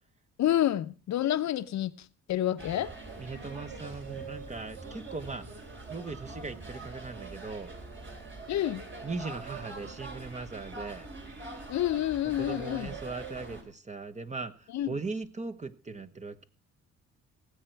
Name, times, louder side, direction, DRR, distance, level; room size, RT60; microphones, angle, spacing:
voice 1, 0.4-1.9 2.3-2.9 8.5-8.8 11.7-12.9 14.7-14.9, left 12 dB, 65° left, 0.8 m, -28 dB
sound 1, 2.6-13.6, right 3 dB, 40° right, 3.5 m, -43 dB
voice 2, 3.2-7.7 9.0-11.1 12.4-16.4, right 4 dB, 25° right, 1.1 m, -39 dB
17.5 x 7.9 x 4.6 m
cardioid pair, 90°, 30 cm